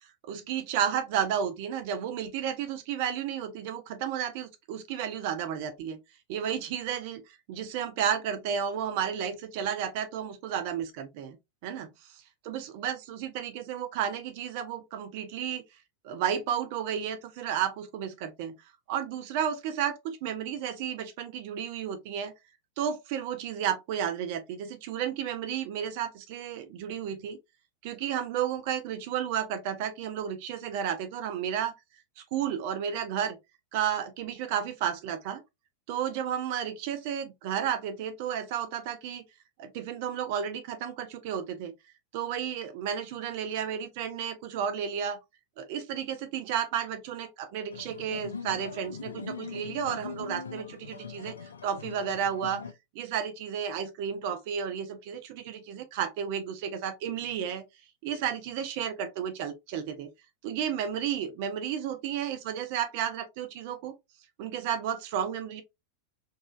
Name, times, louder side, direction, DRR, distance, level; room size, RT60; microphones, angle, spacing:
voice 1, 0.2-6.0 6.3-7.2 7.5-11.4 11.6-11.9 12.4-15.6 16.0-18.5 18.9-22.3 22.8-27.4 27.8-31.7 32.2-33.4 33.7-35.4 35.9-39.2 39.6-41.7 42.1-45.2 45.6-51.3 51.6-52.6 52.9-57.6 58.0-60.1 60.4-63.9 64.4-65.6, right 9 dB, 50° right, 0.5 m, -32 dB
sound 1, 47.7-52.7, left 5 dB, 70° left, 0.4 m, -41 dB
4.0 x 2.4 x 2.4 m
figure-of-eight pair, 90°, 0 cm